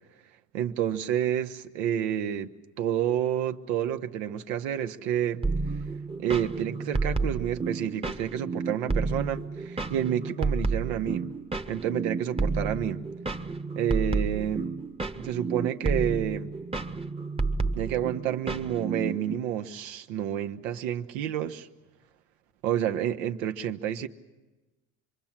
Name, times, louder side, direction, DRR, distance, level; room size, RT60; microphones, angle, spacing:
voice 1, 0.5-5.4 6.2-11.3 11.7-13.0 13.7-14.7 15.2-16.5 17.7-21.7 22.6-24.1, right 10 dB, 85° right, 7 dB, 1.2 m, -29 dB
sound 1, 5.4-19.3, right 3 dB, 15° right, 1.0 m, -31 dB
26.0 x 23.0 x 7.4 m, 1.1 s
supercardioid pair, 85°, 39 cm